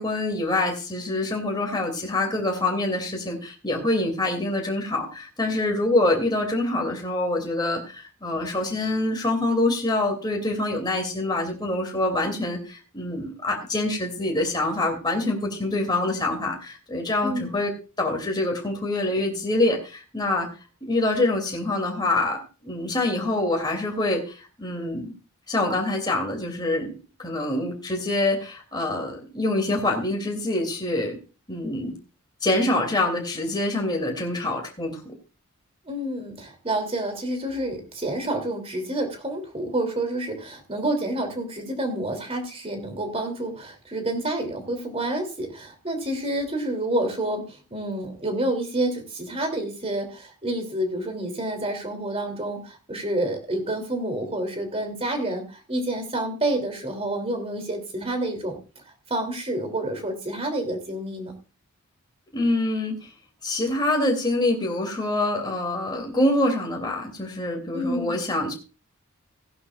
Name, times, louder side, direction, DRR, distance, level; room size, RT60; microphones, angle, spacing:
voice 1, 0.0-17.7 18.0-20.5 20.9-25.1 25.5-31.2 31.5-31.9 32.4-35.1 62.3-63.1 63.4-68.5, left 2 dB, 20° left, 1 dB, 2.7 m, -25 dB
voice 2, 17.2-17.6 35.9-58.6 59.1-61.3 67.7-68.2, right 1 dB, 25° right, 6 dB, 2.9 m, -28 dB
16.5 x 11.0 x 2.4 m, 0.33 s
head